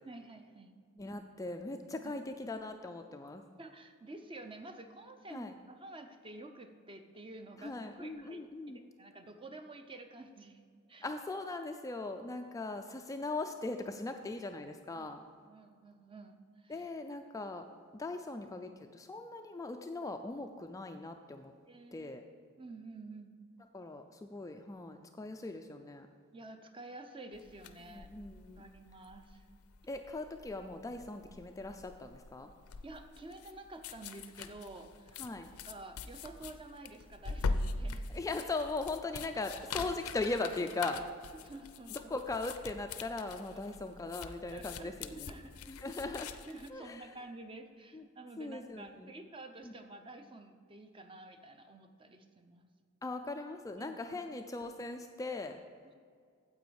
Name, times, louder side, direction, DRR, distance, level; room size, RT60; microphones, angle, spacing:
voice 1, 0.0-0.7 2.0-2.1 3.6-8.4 8.7-10.6 10.9-11.1 15.0-15.1 15.4-16.9 21.7-22.1 22.6-23.3 26.3-28.1 28.6-29.4 32.8-38.0 41.3-42.1 44.5-45.6 46.5-52.7 53.8-54.2, right 2 dB, 25° right, 7 dB, 0.6 m, -50 dB
voice 2, 1.0-3.4 5.3-5.5 7.6-8.8 11.0-15.2 16.7-17.6 17.9-21.5 21.9-22.2 23.7-26.1 27.9-28.6 29.9-32.5 35.2-35.5 38.1-41.0 41.9-45.3 45.7-46.3 46.7-47.1 47.9-48.0 48.4-49.1 49.6-49.7 53.0-55.6, left 3 dB, 15° left, 6 dB, 0.3 m, -39 dB
sound 1, 27.3-46.7, left 3 dB, 75° left, 0.5 m, -43 dB
9.2 x 7.6 x 4.7 m, 2.1 s
head